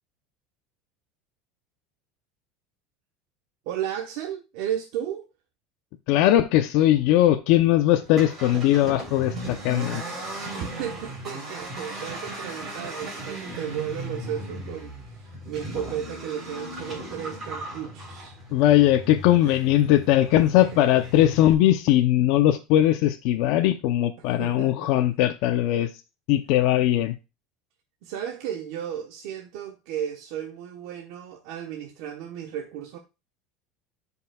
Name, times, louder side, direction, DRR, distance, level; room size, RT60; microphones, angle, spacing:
voice 1, 3.7-5.2 10.5-18.3 19.3-19.6 20.9-21.0 24.2-25.0 28.0-33.0, right 9 dB, 60° right, 1.1 m, -34 dB
voice 2, 6.1-10.0 18.5-25.9 26.3-27.1, left 13 dB, 55° left, 0.6 m, -20 dB
Accelerating revving vroom, 8.0-21.5, right 1 dB, 20° right, 3.5 m, -37 dB
12.0 x 5.4 x 2.3 m
cardioid pair, 165°, 0 cm